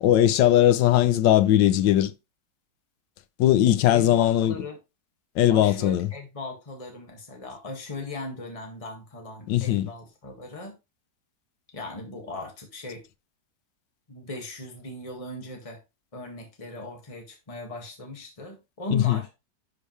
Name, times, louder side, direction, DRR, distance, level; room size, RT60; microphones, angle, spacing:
voice 1, 0.0-2.1 3.4-4.7 5.4-6.1 9.5-9.9 18.9-19.2, left 12 dB, 80° left, 1.4 m, -19 dB
voice 2, 3.9-4.8 5.5-10.8 11.7-13.0 14.1-15.8 16.1-19.3, left 2 dB, 20° left, 1.7 m, -38 dB
11.0 x 5.1 x 3.1 m
omnidirectional pair, 1.9 m